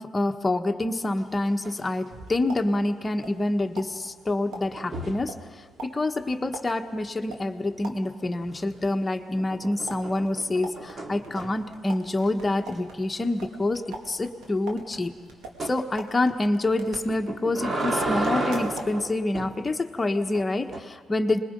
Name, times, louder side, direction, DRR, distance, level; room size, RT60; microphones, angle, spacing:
voice 1, 0.0-15.1 15.6-21.4, left 2 dB, 20° left, 5 dB, 1.4 m, -27 dB
sound 1, 1.2-1.8 2.1-2.4 4.8-5.3 8.4-8.9 9.4-11.7 12.2-12.3 12.7-12.8 13.1-13.2 15.6-15.8 17.1-19.6 20.3-20.8, right 2 dB, 40° right, 2.4 m, -32 dB
sound 2, 2.1-3.5 3.8-8.3 9.9-17.7 18.0-19.0, right 2 dB, 85° right, 2.6 m, -43 dB
26.5 x 21.0 x 5.4 m, 1.5 s
cardioid pair, 90°, 0 cm